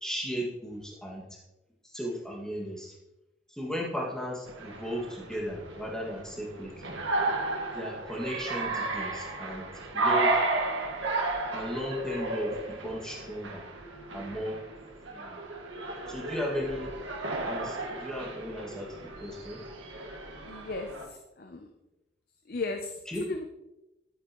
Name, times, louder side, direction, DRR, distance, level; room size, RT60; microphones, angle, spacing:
voice 1, 0.0-1.2 1.8-2.9 3.5-7.0 7.7-9.7 9.9-10.3 11.5-13.6 14.1-14.6 15.1-15.4 16.1-16.9 17.5-19.6 23.1-23.2, equal, 5° left, -3 dB, 1.9 m, -36 dB
sound 1, 4.5-21.1, right 2 dB, 85° right, 1.7 m, -33 dB
voice 2, 20.4-21.7 22.5-23.0 23.3-23.5, left 3 dB, 50° left, 5 dB, 0.6 m, -36 dB
11.5 x 9.3 x 3.0 m, 0.96 s
head